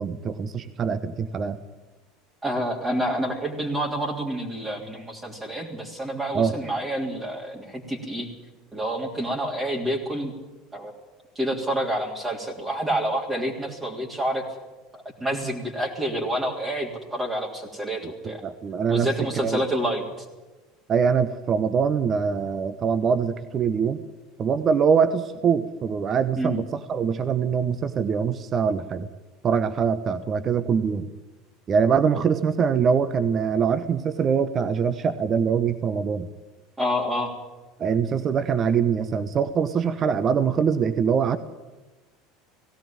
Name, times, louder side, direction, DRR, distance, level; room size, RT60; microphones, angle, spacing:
voice 1, 0.0-1.6 6.3-6.6 18.2-19.1 19.3-19.6 20.9-24.0 24.4-29.1 29.4-31.1 31.7-36.3 37.8-41.4, right 6 dB, 35° right, 12 dB, 1.0 m, -23 dB
voice 2, 2.4-8.3 8.7-10.3 10.7-10.9 11.4-14.4 14.9-18.4 18.9-20.3 26.4-26.5 36.8-37.3, right 1 dB, 15° right, -2 dB, 3.4 m, -28 dB
18.5 x 17.0 x 8.9 m, 1.2 s
figure-of-eight pair, 70°, 0 cm